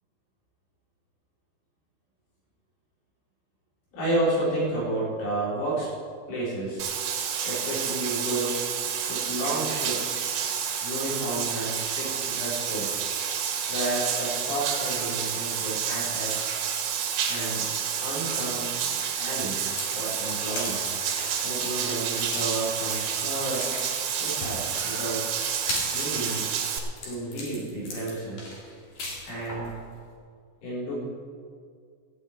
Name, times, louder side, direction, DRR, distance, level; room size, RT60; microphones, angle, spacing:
voice 1, 3.9-5.9 6.3-6.8 7.4-8.6 9.1-10.3 10.8-13.0 13.7-16.5 17.3-17.7 18.0-18.7 19.2-19.6 19.9-20.9 21.4-23.7 24.2-25.2 25.9-26.6 27.0-28.6 29.2-29.7 30.6-30.9, right 1 dB, 70° left, -7 dB, 6.9 m, -31 dB
Bathtub (filling or washing), 6.8-26.8, right 8 dB, 75° right, 3.6 m, -29 dB
sound 1, 19.7-29.7, left 2 dB, 45° left, 3.6 m, -38 dB
15.5 x 6.5 x 8.9 m, 2.1 s
omnidirectional pair, 5.9 m